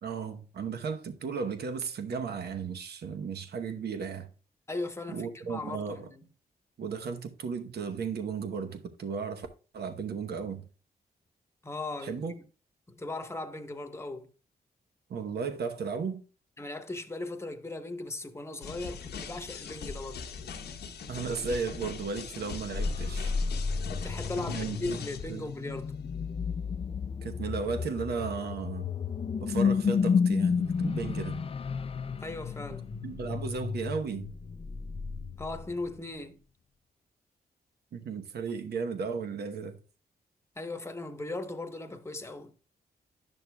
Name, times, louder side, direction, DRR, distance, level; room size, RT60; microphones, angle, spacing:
voice 1, 0.0-4.3 5.1-6.1 6.8-9.5 9.7-10.7 12.0-12.3 15.1-16.2 21.1-23.3 24.5-25.0 25.3-25.5 27.2-28.9 29.4-31.4 33.0-34.3 37.9-39.8, right 5 dB, 75° right, 0.9 m, -35 dB
voice 2, 4.7-6.2 11.6-12.3 12.9-14.3 16.6-20.3 23.9-26.0 32.2-32.9 35.4-36.4 40.6-42.5, left 2 dB, 15° left, 1.0 m, -38 dB
sound 1, 18.6-25.5, left 5 dB, 85° left, 0.9 m, -41 dB
sound 2, 22.7-36.0, left 5 dB, 35° left, 0.4 m, -32 dB
10.5 x 6.5 x 2.2 m
cardioid pair, 75°, 17 cm